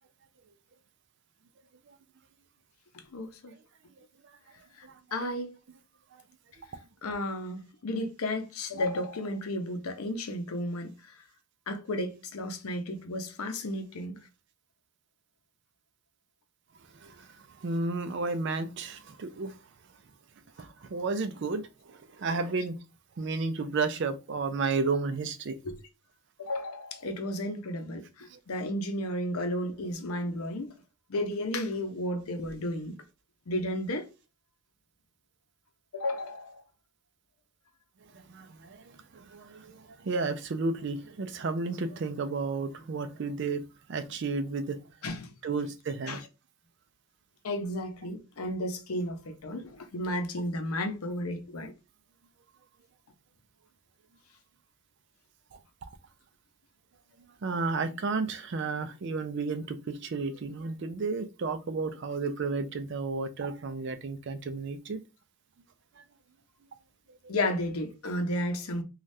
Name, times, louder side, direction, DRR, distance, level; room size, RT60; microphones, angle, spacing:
voice 1, 3.1-3.5 4.8-5.5 7.0-10.9 11.7-14.2 25.6-25.8 26.4-30.7 31.1-33.0 33.5-34.0 35.9-36.6 45.0-45.3 46.1-46.2 47.4-51.7 67.3-68.8, left 1 dB, 90° left, 0.6 m, -33 dB
voice 2, 16.8-19.6 20.6-22.8 23.2-25.6 28.3-28.4 38.0-43.6 43.9-44.8 45.4-46.2 55.5-55.9 57.4-65.0 66.0-66.1 67.1-67.3, right 4 dB, 55° right, 0.4 m, -33 dB
3.2 x 2.3 x 2.6 m
head